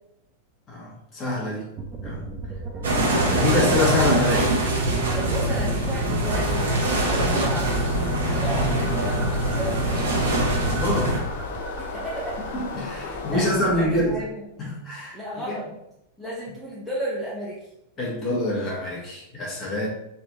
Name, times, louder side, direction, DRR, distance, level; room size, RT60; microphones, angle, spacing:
voice 1, 0.7-1.7 2.0-2.2 3.2-4.5 10.6-11.2 12.5-14.1 14.6-15.2 18.0-19.9, left 2 dB, 30° left, -4 dB, 1.5 m, -25 dB
sound 1, 1.8-14.3, right 1 dB, 25° right, 0.4 m, -35 dB
sound 2, 2.8-11.2, right 1 dB, 65° right, 0.9 m, -23 dB
voice 2, 5.1-7.8 8.3-10.3 11.8-12.4 13.0-14.4 15.1-15.7 16.2-17.6, right 1 dB, 5° left, -7 dB, 0.9 m, -33 dB
sound 3, 6.3-13.6, left 5 dB, 55° left, 0.4 m, -35 dB
4.1 x 2.8 x 2.6 m, 0.85 s
figure-of-eight pair, 90°, 0 cm